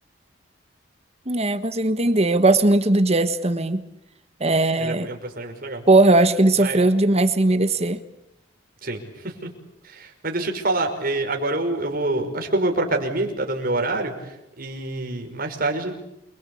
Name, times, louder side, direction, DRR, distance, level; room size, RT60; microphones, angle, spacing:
voice 1, 1.3-3.9 4.4-5.1 5.9-8.0, right 2 dB, 35° right, 1.4 m, -18 dB
voice 2, 4.8-5.8 6.6-6.8 8.8-9.5 9.8-15.9, right 2 dB, 50° right, 5.5 m, -26 dB
29.0 x 23.5 x 8.7 m
head